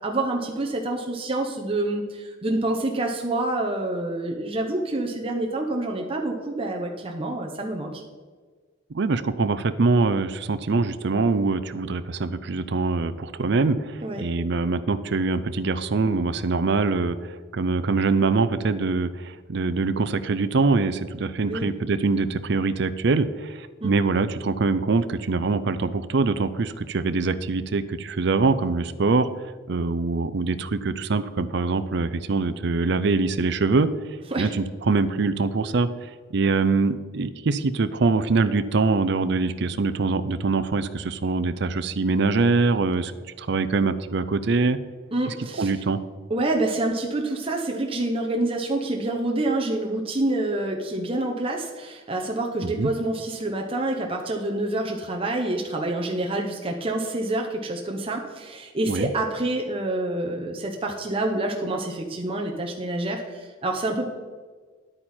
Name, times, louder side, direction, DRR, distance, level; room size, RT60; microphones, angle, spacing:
voice 1, 0.0-7.9 14.0-14.2 21.5-21.7 23.8-23.9 34.3-34.5 45.1-45.7 46.3-64.1, right 2 dB, 30° right, 1 dB, 1.0 m, -27 dB
voice 2, 8.9-29.3 29.7-33.9 34.4-35.9 36.3-43.1 43.4-44.8 45.6-46.0 52.6-52.9 58.9-59.1, right 3 dB, 60° right, 12 dB, 0.5 m, -23 dB
10.0 x 8.8 x 4.4 m, 1.4 s
head